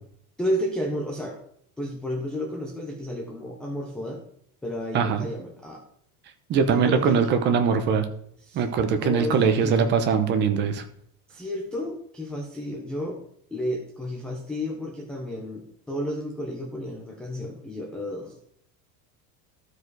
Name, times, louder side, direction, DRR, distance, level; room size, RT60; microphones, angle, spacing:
voice 1, 0.4-1.4 1.8-4.2 4.6-5.8 6.7-7.2 8.5-8.6 8.9-9.9 11.3-13.2 13.5-18.4, left 1 dB, ahead, 0 dB, 0.3 m, -32 dB
voice 2, 4.9-5.3 6.5-8.1 8.5-10.8, right 6 dB, 25° right, 8 dB, 0.7 m, -22 dB
13.0 x 4.8 x 4.6 m, 0.67 s
cardioid pair, 180°, 40 cm